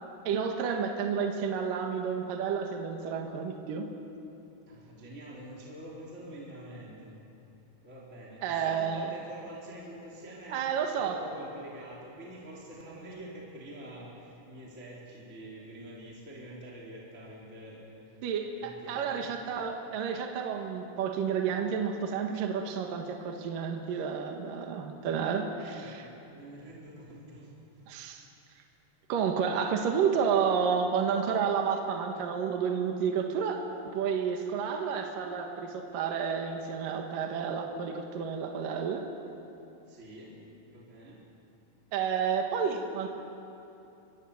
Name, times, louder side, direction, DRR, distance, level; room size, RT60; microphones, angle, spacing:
voice 1, 0.2-3.9 8.4-9.1 10.5-11.2 18.2-26.1 27.9-28.2 29.1-33.7 33.9-39.0 41.9-43.1, right 6 dB, 60° right, 3 dB, 2.4 m, -30 dB
voice 2, 4.7-7.2 7.8-18.0 18.5-19.3 23.9-24.0 25.8-27.9 39.9-40.4 40.7-41.3, right 1 dB, 15° right, -4 dB, 3.0 m, -46 dB
24.5 x 24.5 x 7.2 m, 2.9 s
omnidirectional pair, 5.7 m